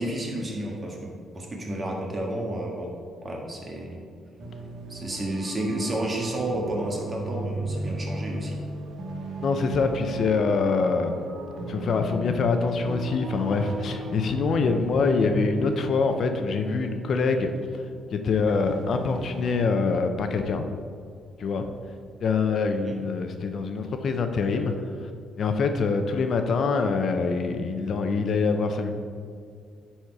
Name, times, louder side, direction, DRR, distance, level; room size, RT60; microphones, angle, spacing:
voice 1, 0.0-2.9 3.2-4.0 4.9-8.6 22.7-23.0, right 1 dB, 30° right, -1 dB, 1.8 m, -31 dB
sound 1, 4.4-19.5, right 2 dB, 65° right, 1.0 m, -36 dB
voice 2, 9.4-11.2 11.7-17.8 18.1-20.6 21.4-21.7 22.2-24.7 25.4-28.9, left 4 dB, 60° left, 6 dB, 0.7 m, -25 dB
10.5 x 4.3 x 4.7 m, 2.2 s
cardioid pair, 90°, 0 cm